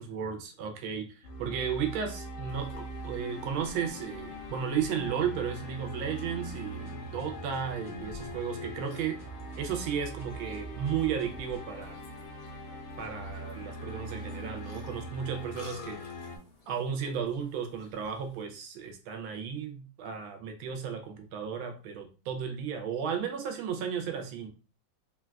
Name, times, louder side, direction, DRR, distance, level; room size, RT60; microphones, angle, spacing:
voice 1, 0.0-9.2 9.6-12.0 13.0-16.0 16.7-24.5, right 7 dB, 85° right, 4 dB, 1.4 m, -34 dB
sound 1, 1.2-16.4, equal, 80° left, 1.4 m, -42 dB
Burping eructation, 2.5-18.4, left 2 dB, 55° left, 0.7 m, -54 dB
sound 2, 6.5-11.8, right 4 dB, 35° right, 0.7 m, -51 dB
3.7 x 2.3 x 2.2 m, 0.35 s
omnidirectional pair, 2.2 m